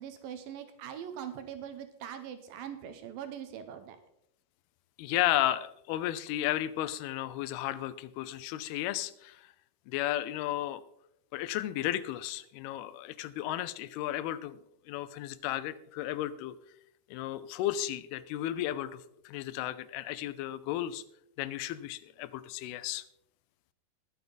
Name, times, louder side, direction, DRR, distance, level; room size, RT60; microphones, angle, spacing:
voice 1, 0.0-4.0, right 9 dB, 75° right, 8 dB, 2.5 m, -42 dB
voice 2, 5.0-9.5 9.9-10.8 11.3-14.6 14.9-16.6 17.1-21.0 21.4-23.0, left 13 dB, 85° left, 15 dB, 2.6 m, -34 dB
20.0 x 7.1 x 4.0 m, 0.77 s
omnidirectional pair, 4.4 m